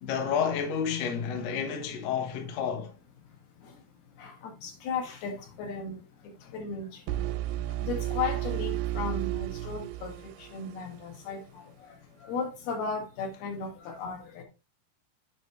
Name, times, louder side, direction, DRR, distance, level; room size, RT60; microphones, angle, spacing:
voice 1, 0.0-2.9, left 7 dB, 60° left, 1.8 m, -30 dB
voice 2, 4.2-6.0 6.5-6.9 7.8-10.1 10.5-11.6 12.2-14.4, left 5 dB, 75° left, 3.6 m, -35 dB
sound 1, 7.1-11.0, right 14 dB, 85° right, 2.6 m, -32 dB
9.2 x 5.2 x 3.2 m
omnidirectional pair, 4.5 m